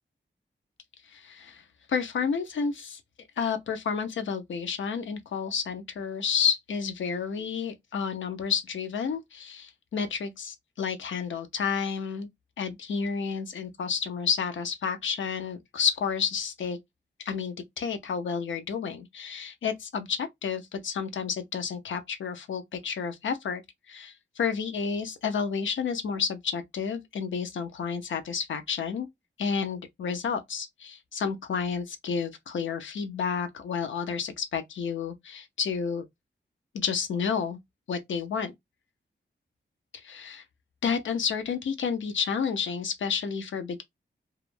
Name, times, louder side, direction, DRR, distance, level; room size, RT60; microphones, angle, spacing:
voice 1, 1.1-1.6 1.9-3.0 3.4-12.3 12.6-16.8 17.2-23.6 23.9-29.1 29.4-36.0 36.7-37.6 37.9-38.5 39.9-40.4 40.8-43.8, left 6 dB, 85° left, 0.5 m, -30 dB
2.3 x 2.1 x 3.0 m
wide cardioid pair, 85°, 19 cm